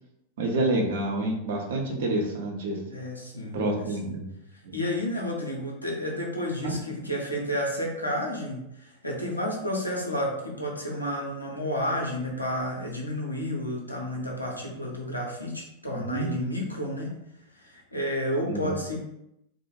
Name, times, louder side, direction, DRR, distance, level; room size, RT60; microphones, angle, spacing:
voice 1, 0.4-2.8 3.5-4.3 4.6-4.7 6.6-6.7 16.1-16.3 18.5-18.7, right 2 dB, 55° right, 0 dB, 0.6 m, -28 dB
voice 2, 2.9-3.6 4.0-4.1 4.7-17.1 17.6-19.0, left 1 dB, 85° left, -2 dB, 0.6 m, -31 dB
2.3 x 2.0 x 3.1 m, 0.84 s
figure-of-eight pair, 90°, 0 cm